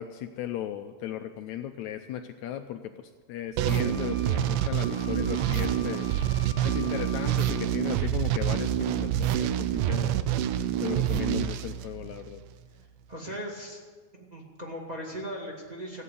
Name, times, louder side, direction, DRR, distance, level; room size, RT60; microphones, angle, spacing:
voice 1, 0.0-6.1 6.6-10.2 10.8-12.4, left 11 dB, 80° left, 7 dB, 1.7 m, -36 dB
sound 1, 3.6-12.4, right 11 dB, 80° right, 2.2 m, -27 dB
Wind instrument woodwind instrument, 3.7-7.7, left 7 dB, 50° left, 1.4 m, -46 dB
voice 2, 13.1-13.8 14.1-16.0, equal, 15° right, -1 dB, 1.7 m, -38 dB
15.0 x 9.2 x 8.3 m, 1.4 s
omnidirectional pair, 3.8 m